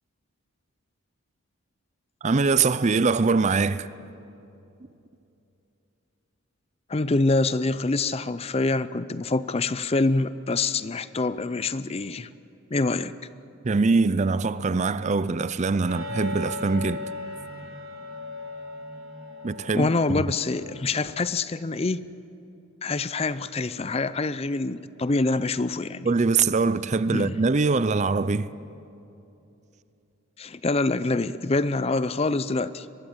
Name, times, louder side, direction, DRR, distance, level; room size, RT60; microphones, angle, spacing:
voice 1, 2.2-3.9 13.6-17.0 19.4-20.2 26.0-28.5, right 4 dB, 30° right, 0.5 m, -23 dB
voice 2, 6.9-12.3 12.7-13.1 19.7-22.0 22.8-26.1 27.1-27.4 30.4-32.9, left 3 dB, 30° left, 0.5 m, -25 dB
sound 1, 15.9-21.2, left 1 dB, 70° right, 4.3 m, -38 dB
23.5 x 21.0 x 8.0 m
head